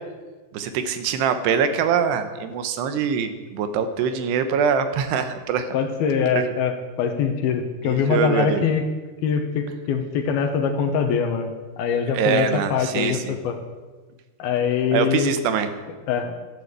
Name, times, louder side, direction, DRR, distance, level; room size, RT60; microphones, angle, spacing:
voice 1, 0.5-5.7 6.3-6.5 7.8-8.6 12.1-13.3 14.9-15.7, right 7 dB, 80° right, 9 dB, 3.1 m, -23 dB
voice 2, 5.7-8.9 9.2-13.6 14.4-15.3 16.1-16.3, left 6 dB, 70° left, 5 dB, 2.9 m, -23 dB
13.5 x 10.5 x 8.1 m, 1.3 s
omnidirectional pair, 4.9 m